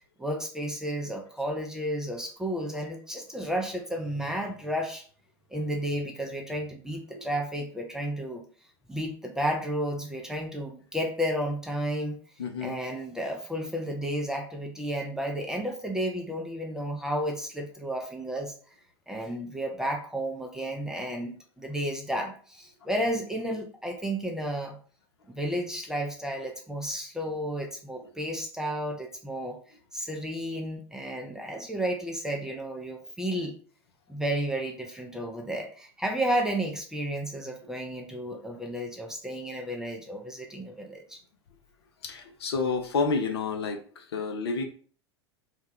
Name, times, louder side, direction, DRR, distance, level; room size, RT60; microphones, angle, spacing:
voice 1, 0.2-5.0 5.5-8.4 8.9-12.2 12.6-18.5 19.1-24.8 25.3-29.6 29.9-33.6 34.1-41.2, equal, 5° right, 2 dB, 0.5 m, -32 dB
voice 2, 12.4-12.8 42.0-44.6, left 4 dB, 65° left, 6 dB, 0.5 m, -30 dB
2.3 x 2.2 x 3.3 m, 0.44 s
figure-of-eight pair, 80°, 14 cm